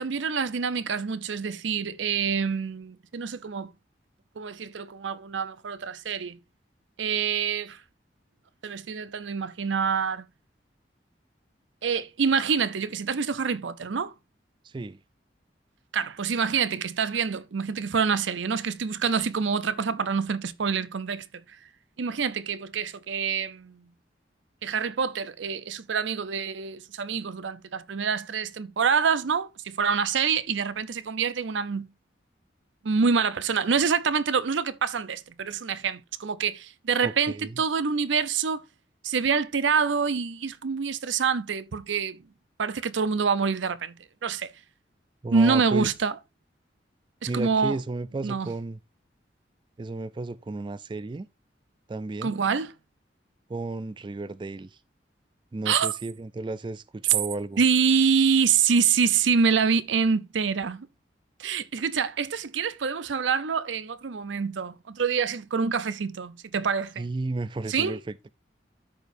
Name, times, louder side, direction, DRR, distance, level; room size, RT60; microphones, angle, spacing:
voice 1, 0.0-3.7 4.4-6.4 7.0-7.8 8.6-10.3 11.8-14.1 15.9-21.3 22.0-23.9 24.6-31.9 32.8-38.6 39.0-42.2 42.6-43.9 44.2-44.5 45.3-46.1 47.2-47.8 48.2-48.5 52.2-52.7 55.7-55.9 57.6-60.9 61.4-67.1 67.7-68.0, right 6 dB, 85° right, 0.6 m, -26 dB
voice 2, 14.6-15.0 37.0-37.6 45.2-45.9 47.3-48.8 49.8-51.3 51.9-52.4 53.5-54.8 55.5-57.6 67.0-68.3, right 2 dB, 25° right, 0.3 m, -33 dB
13.5 x 5.1 x 2.6 m
head